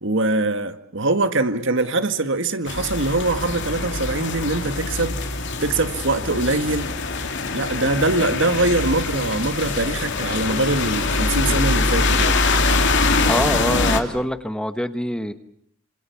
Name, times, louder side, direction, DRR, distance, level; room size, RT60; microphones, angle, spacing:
voice 1, 0.0-6.9 7.5-12.4, right 2 dB, 65° right, 1.9 m, -23 dB
sound 1, 2.7-14.0, left 3 dB, 60° left, 2.9 m, -23 dB
voice 2, 13.3-15.3, equal, 5° left, 1.1 m, -24 dB
27.5 x 26.5 x 7.1 m
head